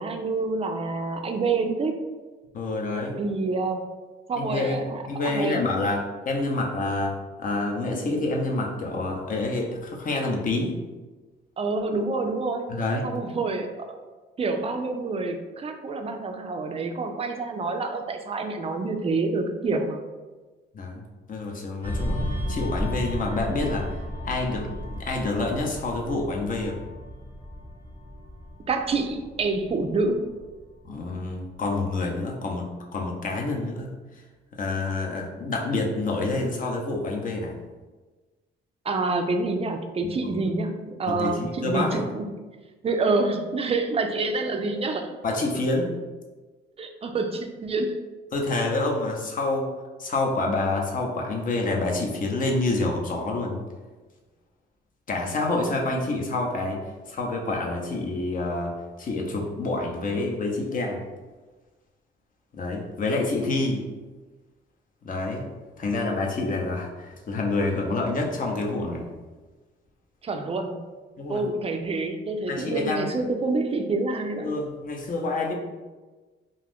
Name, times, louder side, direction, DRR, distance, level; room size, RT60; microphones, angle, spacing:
voice 1, 0.0-2.0 3.2-3.9 4.3-5.6 11.6-12.7 13.0-13.7 14.4-20.0 28.7-30.3 38.9-42.2 42.8-45.1 46.8-48.0 70.2-70.8 71.3-74.5, right 3 dB, 30° right, 5 dB, 0.4 m, -27 dB
voice 2, 2.5-3.2 4.4-10.7 12.7-13.0 20.7-21.0 21.3-22.2 22.5-26.8 30.8-33.9 34.6-37.6 40.0-40.4 41.1-42.0 45.2-45.9 48.3-49.7 50.0-53.6 55.1-56.8 57.1-61.0 62.5-63.8 65.0-65.4 65.8-69.1 71.2-71.4 72.5-73.1 74.4-75.5, left 2 dB, 45° left, 0 dB, 0.7 m, -27 dB
sound 1, 21.8-30.9 31.2-31.5, equal, 10° left, 1.1 m, -33 dB
2.5 x 2.4 x 3.4 m, 1.3 s
cardioid pair, 90°, 20 cm